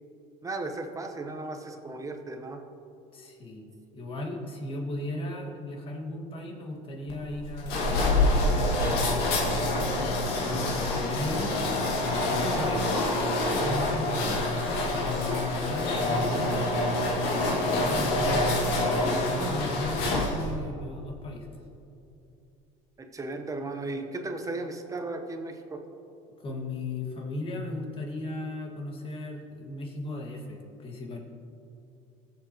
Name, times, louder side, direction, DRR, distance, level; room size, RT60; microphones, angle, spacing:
voice 1, 0.4-2.6 23.0-25.8, right 2 dB, 20° right, 5 dB, 1.1 m, -35 dB
voice 2, 3.1-3.6 3.9-9.9 10.4-11.5 12.0-13.0 13.6-14.5 14.8-16.7 17.5-21.5 26.4-31.2, left 2 dB, 35° left, 0 dB, 2.1 m, -36 dB
sound 1, 7.1-20.6, left 2 dB, 70° left, 2.2 m, -26 dB
20.0 x 7.5 x 3.1 m, 2.7 s
supercardioid pair, 115°, 17 cm